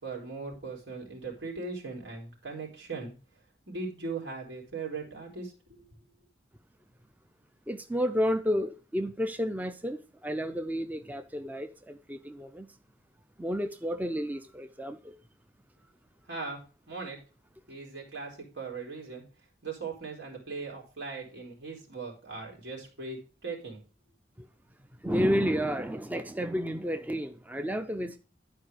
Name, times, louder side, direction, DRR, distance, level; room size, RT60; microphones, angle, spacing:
voice 1, 0.0-3.1 3.7-5.8 16.3-16.6 16.9-17.2 17.7-19.2 19.6-23.8, right 4 dB, 85° right, 3.6 m, -39 dB
voice 2, 7.7-12.7 13.4-15.2 24.4-24.5 25.0-28.2, equal, 10° right, 0.4 m, -31 dB
11.5 x 4.6 x 4.9 m
head